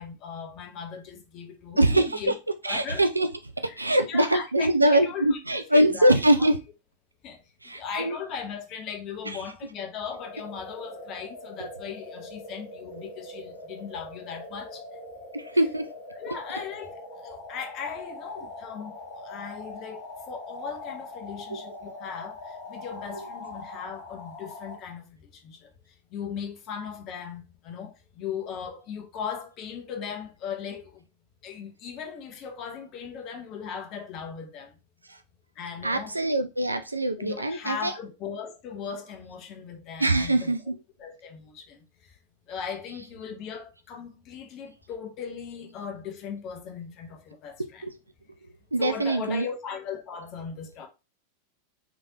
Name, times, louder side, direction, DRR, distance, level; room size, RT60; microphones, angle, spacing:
voice 1, 0.0-2.3 2.6-3.0 3.7-6.1 6.4-6.5 7.2-7.4 7.7-14.8 16.1-18.9 19.2-25.7 26.1-31.0 31.4-34.7 35.6-36.2 37.2-40.5 41.0-41.8 42.5-47.8 48.8-50.9, left 7 dB, 35° left, 0.9 m, -38 dB
voice 2, 1.8-2.4 2.6-3.3 3.8-6.6 7.6-8.2 9.2-9.5 11.6-11.7 12.9-13.0 15.3-15.9 16.3-16.4 18.4-18.5 21.5-21.6 23.1-23.3 35.8-38.0 40.0-40.8 47.8-47.9 48.7-49.5, right 1 dB, 80° right, 0.4 m, -23 dB
sound 1, 10.1-24.8, left 2 dB, 50° left, 1.2 m, -42 dB
4.0 x 3.3 x 2.7 m
figure-of-eight pair, 90°, 0 cm